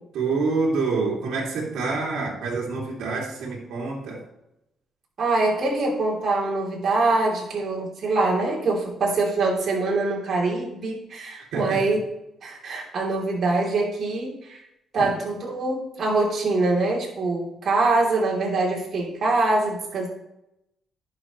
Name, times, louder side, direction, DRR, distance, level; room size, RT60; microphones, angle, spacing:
voice 1, 0.1-4.2 11.5-11.8, right 4 dB, 80° right, -3 dB, 2.5 m, -27 dB
voice 2, 5.2-12.0 12.4-14.6 14.9-20.1, right 3 dB, 50° right, -3 dB, 3.1 m, -24 dB
11.0 x 6.0 x 3.1 m, 0.86 s
cardioid pair, 90°, 0 cm